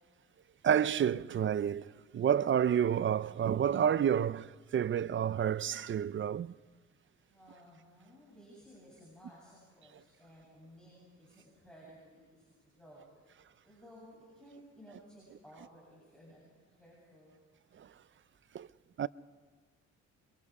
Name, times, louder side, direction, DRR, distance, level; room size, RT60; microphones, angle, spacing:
voice 1, 0.6-6.5 17.8-17.9 18.5-18.7 19.0-19.1, right 9 dB, 40° right, 0.5 m, -29 dB
voice 2, 7.2-13.3 13.6-16.4 16.8-17.4, equal, 5° left, 7.7 m, -57 dB
28.0 x 24.0 x 4.9 m
cardioid pair, 90°, 30 cm